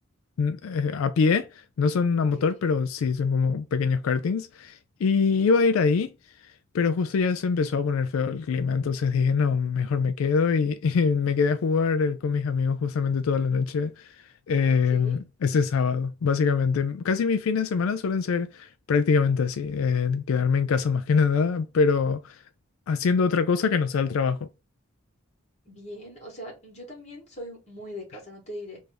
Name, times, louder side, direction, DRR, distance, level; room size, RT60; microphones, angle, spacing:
voice 1, 0.4-1.5 1.8-6.1 6.7-14.1 14.5-22.4 22.9-24.4, left 5 dB, 90° left, 0.4 m, -24 dB
voice 2, 2.2-2.6 14.6-15.2 25.7-28.8, equal, 35° left, 1.9 m, -41 dB
3.4 x 2.6 x 3.2 m
head